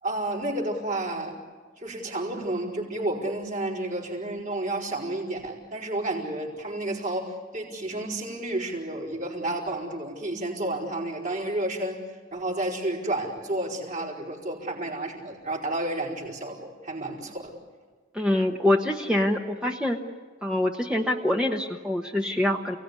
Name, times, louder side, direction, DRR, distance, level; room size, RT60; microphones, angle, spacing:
voice 1, 0.0-1.4 1.8-12.0 12.3-17.5, right 1 dB, 45° right, -3 dB, 5.0 m, -31 dB
voice 2, 18.1-20.0 20.4-22.8, left 1 dB, 5° right, 1 dB, 1.2 m, -25 dB
29.5 x 18.5 x 9.7 m, 1.5 s
head